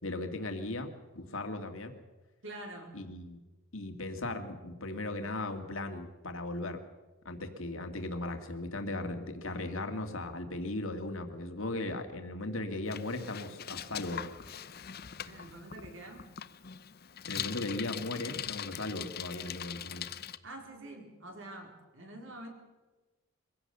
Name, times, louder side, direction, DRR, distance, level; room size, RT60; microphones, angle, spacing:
voice 1, 0.0-0.9 1.2-1.9 2.9-3.4 3.7-6.8 7.2-14.3 17.2-20.1, left 2 dB, 70° left, 6 dB, 2.2 m, -37 dB
voice 2, 2.4-3.0 15.2-16.3 20.4-22.5, right 1 dB, 60° right, 3 dB, 4.1 m, -46 dB
Bicycle, 12.9-20.4, left 9 dB, 45° left, 0.7 m, -42 dB
23.0 x 16.5 x 6.9 m, 1.2 s
head